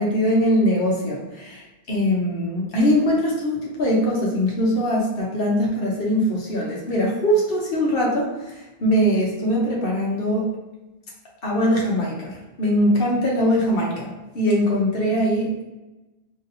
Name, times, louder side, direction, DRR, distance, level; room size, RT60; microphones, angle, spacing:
voice 1, 0.0-10.5 11.4-15.6, equal, 65° left, -3 dB, 1.0 m, -22 dB
3.0 x 2.7 x 2.7 m, 1.1 s
omnidirectional pair, 1.0 m